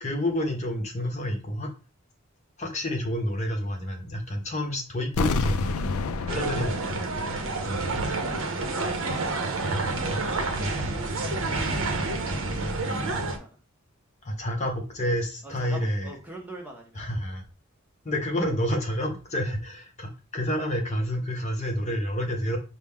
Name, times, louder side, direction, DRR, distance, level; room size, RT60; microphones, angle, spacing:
voice 1, 0.0-1.7 2.6-6.0 6.3-7.1 7.6-8.0 10.3-10.4 14.2-16.1 16.9-17.4 18.0-22.6, equal, 30° left, 2 dB, 0.7 m, -29 dB
sound 1, 5.1-8.0 8.3-8.4, left 3 dB, 80° left, 0.4 m, -29 dB
sound 2, 6.3-13.4, right 3 dB, 65° right, 0.7 m, -29 dB
voice 2, 8.7-9.1 10.4-12.5 12.9-13.6 15.4-17.0, equal, 5° right, 0 dB, 0.7 m, -43 dB
5.9 x 2.1 x 3.5 m, 0.34 s
head